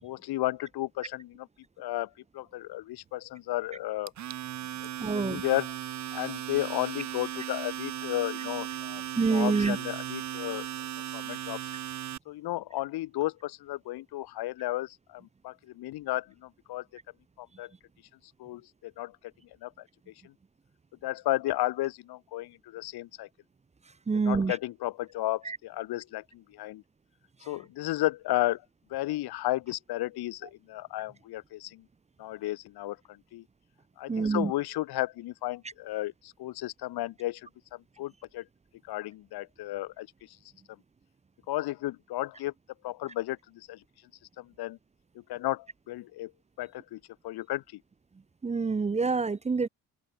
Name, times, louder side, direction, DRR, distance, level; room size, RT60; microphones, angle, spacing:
voice 1, 0.0-1.5 1.8-4.1 4.8-4.9 5.2-5.7 6.1-9.0 9.3-10.7 11.1-11.7 12.3-16.8 17.4-17.7 18.4-19.2 19.6-19.7 20.2-20.3 21.0-23.3 24.2-26.8 27.5-28.6 28.9-31.8 32.2-33.4 34.0-38.4 38.9-40.4 41.5-42.5 42.8-43.8 44.4-44.8 45.1-46.3 46.6-47.8, left 16 dB, 80° left, 6.1 m, -33 dB
Domestic sounds home sounds, 4.1-12.2, right 11 dB, 45° right, 2.0 m, -37 dB
voice 2, 5.0-5.4 9.2-9.8 24.1-24.6 25.4-25.6 34.1-34.5 48.4-49.7, right 4 dB, 15° right, 1.4 m, -26 dB
open air
cardioid pair, 160°, 37 cm